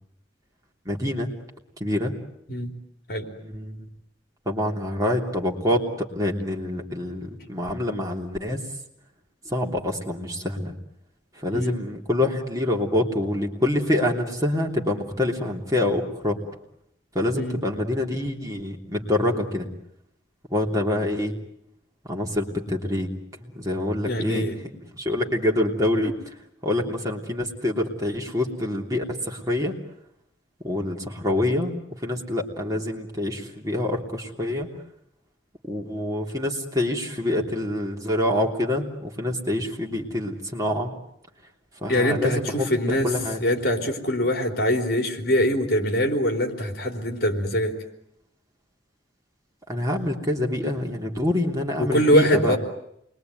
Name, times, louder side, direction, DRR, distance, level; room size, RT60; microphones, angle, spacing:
voice 1, 0.8-1.3 1.8-2.1 3.4-3.9 4.4-8.6 9.4-10.7 11.4-16.4 17.1-19.7 20.5-21.3 22.1-23.1 23.4-24.4 25.0-26.1 26.6-29.7 30.6-31.7 32.0-34.7 35.6-40.9 41.8-42.5 43.0-43.4 49.7-52.6, left 1 dB, 20° right, 0 dB, 3.2 m, -26 dB
voice 2, 24.1-24.6 41.9-43.1 43.4-47.8 51.8-52.6, equal, 60° left, 5 dB, 3.7 m, -23 dB
28.5 x 22.0 x 9.4 m, 0.76 s
head